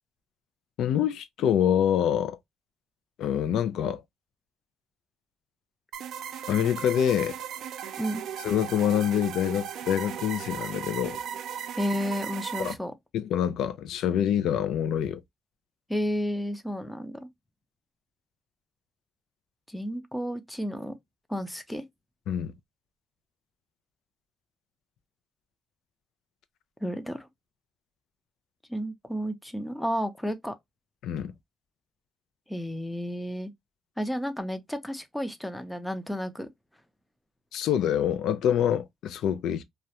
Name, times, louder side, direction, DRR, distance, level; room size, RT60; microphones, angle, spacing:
voice 1, 0.8-2.4 3.2-4.0 6.5-7.4 8.4-11.2 12.6-12.8 13.1-15.2 22.3-22.5 31.0-31.3 37.5-39.6, left 9 dB, 80° left, 0.3 m, -26 dB
sound 1, 5.9-12.7, right 9 dB, 75° right, 0.4 m, -36 dB
voice 2, 11.8-12.9 15.9-17.2 19.7-21.0 21.3-21.8 26.8-27.3 28.7-30.5 32.5-33.5 34.0-36.5, equal, 5° left, 0.5 m, -32 dB
2.3 x 2.1 x 2.8 m
cardioid pair, 100°, 0 cm